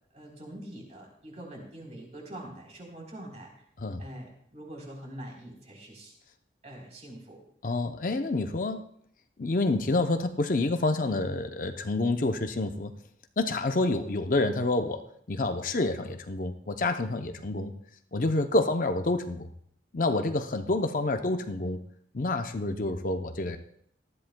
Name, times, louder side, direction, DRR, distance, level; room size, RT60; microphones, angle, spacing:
voice 1, 0.1-3.5 4.0-6.1 6.6-7.4 17.2-17.4 18.6-18.7, right 1 dB, 40° right, -1 dB, 3.7 m, -44 dB
voice 2, 7.6-8.9 9.4-12.9 13.4-15.0 15.3-17.7 18.1-19.5 19.9-21.8 22.1-23.6, left 2 dB, 45° left, 7 dB, 0.6 m, -28 dB
19.0 x 13.0 x 2.2 m, 0.67 s
head